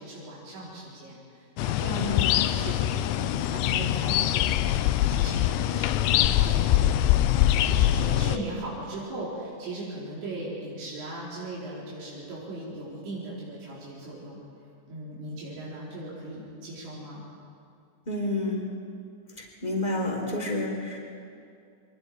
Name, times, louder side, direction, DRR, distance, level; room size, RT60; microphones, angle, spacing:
voice 1, 0.0-4.8 5.1-7.0 7.3-14.4 14.9-17.2, right 1 dB, 80° right, -7 dB, 5.8 m, -38 dB
sound 1, 1.6-8.4, left 12 dB, 85° left, 2.9 m, -23 dB
voice 2, 2.0-2.3 18.1-18.7 19.4-21.0, left 2 dB, 10° left, -1 dB, 3.3 m, -29 dB
29.5 x 23.5 x 4.6 m, 2.3 s
omnidirectional pair, 5.1 m